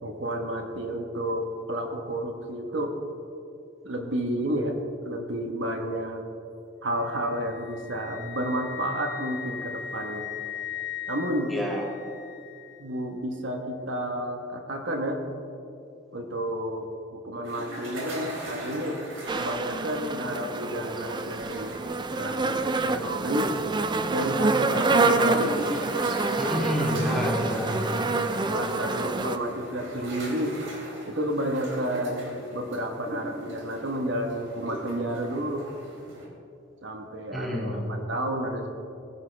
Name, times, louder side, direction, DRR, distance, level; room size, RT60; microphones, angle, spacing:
voice 1, 0.0-3.0 3.8-6.2 6.8-10.3 11.1-11.5 12.8-15.2 16.1-19.0 19.3-21.8 22.2-23.5 24.1-25.5 26.8-27.0 27.9-30.6 31.0-35.7 36.8-38.7, right 1 dB, 70° right, 3 dB, 1.3 m, -31 dB
Wind instrument woodwind instrument, 7.0-13.0, left 8 dB, 60° left, 1.8 m, -39 dB
voice 2, 11.5-11.8 26.4-27.8 37.3-37.9, equal, ahead, -4 dB, 2.2 m, -28 dB
sound 1, 17.4-36.3, right 1 dB, 90° right, 3.2 m, -40 dB
sound 2, 19.3-29.4, right 3 dB, 25° right, 0.5 m, -27 dB
19.0 x 10.5 x 3.4 m, 2.7 s
head